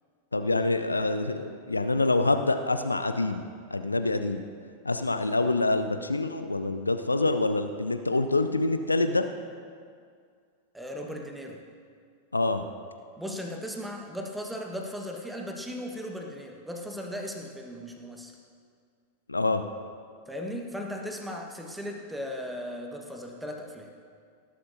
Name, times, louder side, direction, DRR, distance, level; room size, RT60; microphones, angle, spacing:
voice 1, 0.3-4.4 4.8-9.3 12.3-12.6 19.3-19.6, left 2 dB, 80° left, 9 dB, 0.5 m, -26 dB
voice 2, 10.7-11.6 13.2-18.4 20.3-23.9, equal, 5° right, 2 dB, 1.4 m, -37 dB
18.5 x 11.5 x 2.7 m, 2.1 s
figure-of-eight pair, 90°, 0 cm